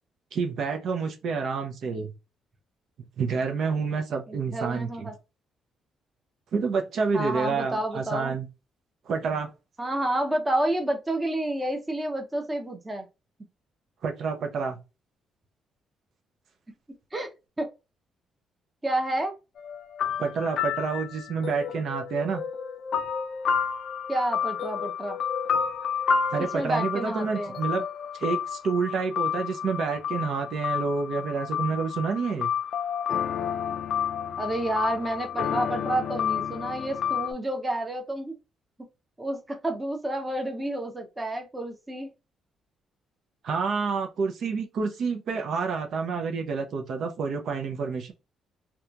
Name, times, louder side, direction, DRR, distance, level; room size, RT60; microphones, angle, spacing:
voice 1, 0.3-2.1 3.2-5.1 6.5-8.5 9.1-9.5 14.0-14.8 20.2-22.4 26.3-27.8 28.2-32.5 43.4-48.1, right 5 dB, 65° right, 0.5 m, -28 dB
voice 2, 4.3-5.1 7.1-8.4 9.8-13.1 17.1-17.3 17.6-17.7 18.8-19.3 24.1-25.2 26.4-27.6 34.4-38.4 39.2-42.1, right 1 dB, 20° right, 0.7 m, -29 dB
sound 1, 19.6-37.3, left 7 dB, 65° left, 0.3 m, -30 dB
2.8 x 2.3 x 2.4 m
cardioid pair, 90°, 0 cm